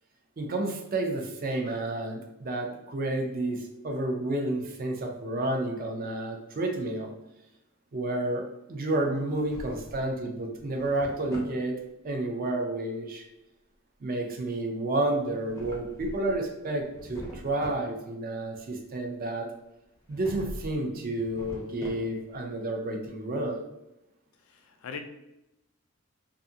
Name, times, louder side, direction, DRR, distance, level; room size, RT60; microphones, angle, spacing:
voice 1, 0.4-7.1 7.9-11.8 12.0-13.3 14.0-19.5 20.1-23.6, right 2 dB, 40° right, 3 dB, 0.4 m, -30 dB
Drawer open or close, 9.2-10.1 10.6-11.6 15.2-16.4 16.8-17.9 20.1-20.8 21.1-22.4, equal, 15° left, 0.4 m, -43 dB
voice 2, 24.5-25.0, left 6 dB, 75° left, 6 dB, 0.4 m, -40 dB
2.5 x 2.4 x 2.6 m, 0.90 s
head